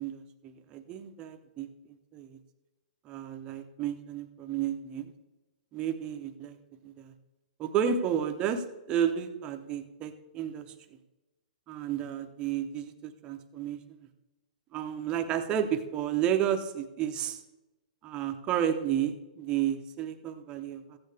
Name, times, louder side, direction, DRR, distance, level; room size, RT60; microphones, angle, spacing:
voice 1, 0.0-1.7 2.1-2.4 3.0-5.1 5.7-6.6 6.8-7.1 7.6-10.7 11.7-14.1 14.7-17.4 18.0-21.0, right 9 dB, 20° right, 7 dB, 0.6 m, -32 dB
14.5 x 8.5 x 3.4 m, 1.0 s
hypercardioid pair, 165°, 5 cm